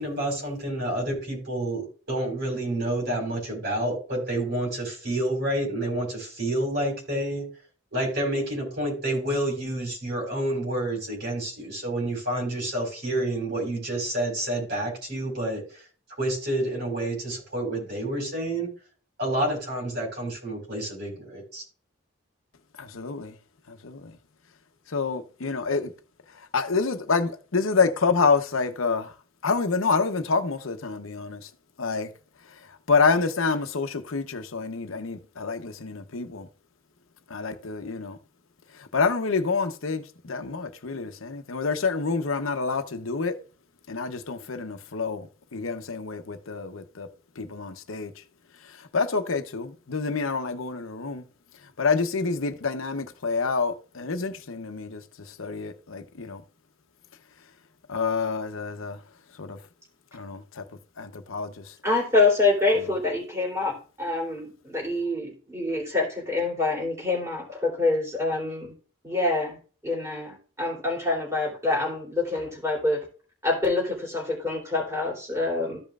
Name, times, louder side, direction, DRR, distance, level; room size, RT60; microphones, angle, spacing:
voice 1, 0.0-7.4 7.9-15.9 16.2-18.7 19.2-21.6, right 1 dB, 55° right, 4.8 m, -29 dB
voice 2, 22.8-23.4 23.7-24.1 24.9-25.9 26.3-29.1 29.4-31.5 31.8-32.1 32.5-36.5 37.3-38.2 38.7-43.4 43.9-47.1 47.4-48.2 48.6-51.2 51.8-56.4 57.9-59.0 59.3-59.6 60.1-60.6 61.0-61.7 62.7-62.9, left 4 dB, 90° left, 0.8 m, -28 dB
voice 3, 61.8-68.7 69.0-69.6 69.8-73.0 73.4-75.8, left 3 dB, 15° right, 3.0 m, -26 dB
14.5 x 5.3 x 2.4 m
head